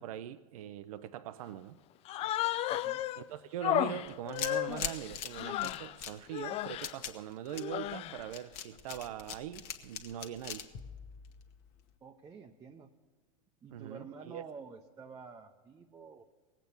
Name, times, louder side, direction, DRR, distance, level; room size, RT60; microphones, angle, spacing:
voice 1, 0.0-1.8 3.2-10.7 13.7-14.4, right 11 dB, 75° right, 0.5 m, -42 dB
Human voice, 2.0-3.2 3.6-5.9 6.3-6.9 7.5-8.3, left 13 dB, 35° left, 0.4 m, -34 dB
voice 2, 2.7-3.1 12.0-12.9 13.6-16.2, right 5 dB, 20° right, 0.6 m, -50 dB
sound 1, 4.1-11.8, left 8 dB, 50° left, 1.2 m, -42 dB
18.0 x 8.2 x 6.9 m
hypercardioid pair, 105°, 19 cm